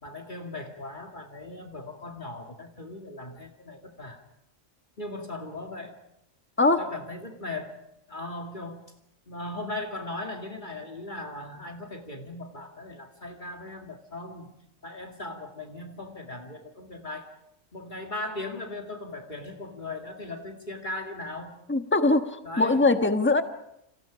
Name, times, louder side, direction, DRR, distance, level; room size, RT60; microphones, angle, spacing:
voice 1, 0.0-4.2 5.0-6.0 6.8-7.8 8.1-8.8 9.3-14.5 14.8-17.3 17.7-21.6 22.4-22.9, left 2 dB, 40° left, 3 dB, 2.3 m, -38 dB
voice 2, 21.7-23.4, left 2 dB, 10° left, 7 dB, 1.3 m, -22 dB
29.5 x 27.5 x 5.1 m, 0.80 s
omnidirectional pair, 1.3 m